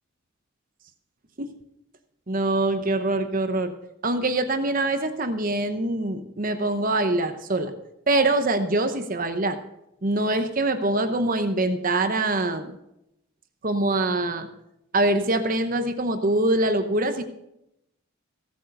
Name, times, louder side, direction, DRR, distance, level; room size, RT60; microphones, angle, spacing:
voice 1, 2.3-3.7 4.0-7.7 8.1-9.6 10.0-12.8 13.6-14.5 14.9-17.2, right 2 dB, 40° right, 8 dB, 0.9 m, -24 dB
16.0 x 8.3 x 6.6 m, 0.85 s
head